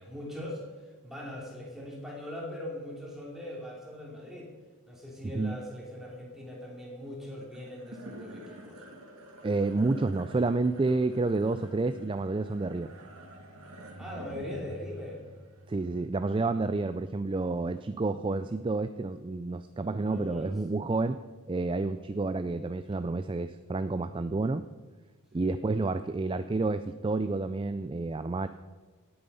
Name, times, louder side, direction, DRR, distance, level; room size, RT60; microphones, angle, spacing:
voice 1, 0.0-4.5 4.9-8.8 14.0-15.2 19.7-20.5 25.4-25.5, left 1 dB, ahead, -3 dB, 3.0 m, -41 dB
sound 1, 7.4-17.9, right 1 dB, 75° right, 2.1 m, -49 dB
voice 2, 9.4-12.9 15.7-21.2 21.5-24.7 25.3-28.5, right 3 dB, 20° right, 11 dB, 0.3 m, -29 dB
17.5 x 8.8 x 5.6 m, 1.3 s
head